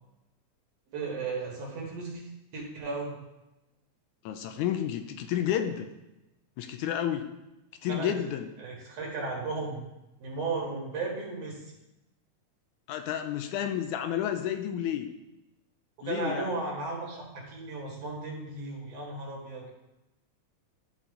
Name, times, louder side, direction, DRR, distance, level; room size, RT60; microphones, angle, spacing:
voice 1, 0.9-2.2 2.5-3.1 7.9-8.1 8.6-9.8 10.2-11.6 16.0-19.7, right 3 dB, 60° right, -2 dB, 2.5 m, -35 dB
voice 2, 4.3-5.9 6.6-7.3 7.8-8.5 12.9-15.1 16.0-16.5, left 10 dB, 85° left, 7 dB, 2.0 m, -31 dB
11.5 x 4.2 x 3.8 m, 0.95 s
omnidirectional pair, 3.5 m